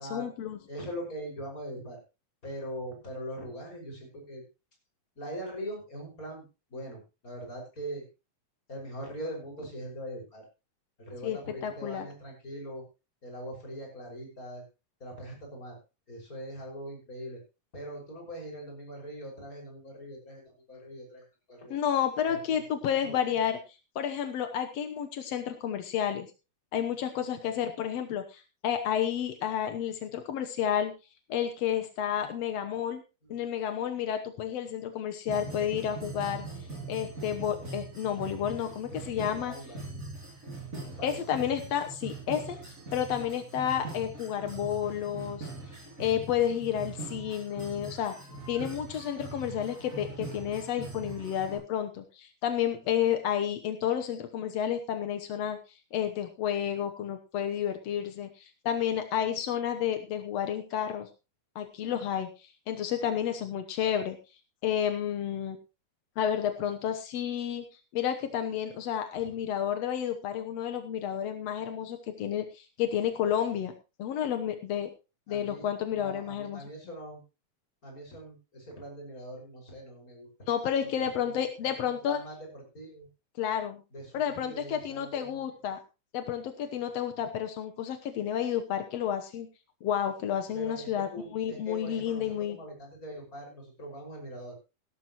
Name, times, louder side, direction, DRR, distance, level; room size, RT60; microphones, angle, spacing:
voice 1, 0.1-0.6 11.2-12.1 21.7-23.6 23.9-26.3 26.7-30.9 31.3-33.0 33.3-36.4 36.9-39.5 41.0-45.5 46.0-48.1 48.5-55.6 55.9-61.1 61.5-64.2 64.6-65.6 66.2-67.6 67.9-73.7 74.0-74.9 75.3-76.6 80.5-82.2 83.4-83.8 84.1-85.8 86.1-89.5 89.8-92.6, left 9 dB, 75° left, 6 dB, 1.5 m, -31 dB
voice 2, 0.7-2.0 2.4-4.4 5.2-6.4 6.7-8.1 8.7-10.5 11.0-12.8 13.2-14.6 15.0-15.8 16.1-17.4 17.7-21.8 22.3-23.4 32.1-32.3 33.2-33.4 39.5-39.8 41.0-41.3 69.1-69.3 75.3-77.2 77.8-80.3 80.8-81.4 81.8-83.1 83.9-85.5 90.5-94.5, equal, 20° left, 0 dB, 5.9 m, -42 dB
sound 1, 35.3-51.6, right 3 dB, 20° right, 7.4 m, -42 dB
17.0 x 12.0 x 3.0 m, 0.29 s
omnidirectional pair, 4.4 m